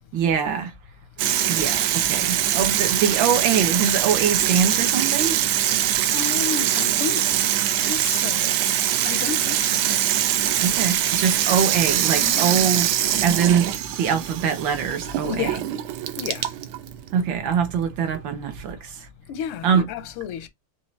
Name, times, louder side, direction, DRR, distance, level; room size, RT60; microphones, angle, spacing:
voice 1, 0.1-0.7 1.5-5.4 10.6-12.9 13.2-15.5 17.1-19.1 19.6-19.8, right 7 dB, 65° right, 1.6 m, -23 dB
Water tap faucet / Sink (filling or washing), 1.2-18.7, right 11 dB, 80° right, 1.5 m, -23 dB
voice 2, 6.1-7.4 7.8-8.6 9.0-10.0 12.2-12.6 15.2-15.6 16.2-16.5 19.3-20.5, left 8 dB, 90° left, 1.6 m, -31 dB
5.5 x 2.6 x 3.2 m
omnidirectional pair, 2.4 m